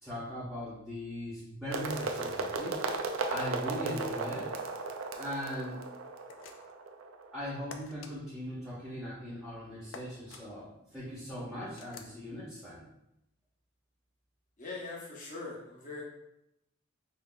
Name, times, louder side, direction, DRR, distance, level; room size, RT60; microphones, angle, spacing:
voice 1, 0.0-2.8 3.3-4.5 5.2-5.8 7.3-12.9, equal, 5° right, -12 dB, 1.0 m, -39 dB
sound 1, 1.7-7.6, right 3 dB, 70° right, 0.4 m, -36 dB
sound 2, 6.3-6.8 7.7-8.1 9.9-10.4 11.8-12.2, left 5 dB, 65° left, 0.4 m, -48 dB
voice 2, 14.6-16.0, left 3 dB, 35° left, -4 dB, 0.9 m, -41 dB
5.4 x 2.8 x 2.3 m, 0.84 s
head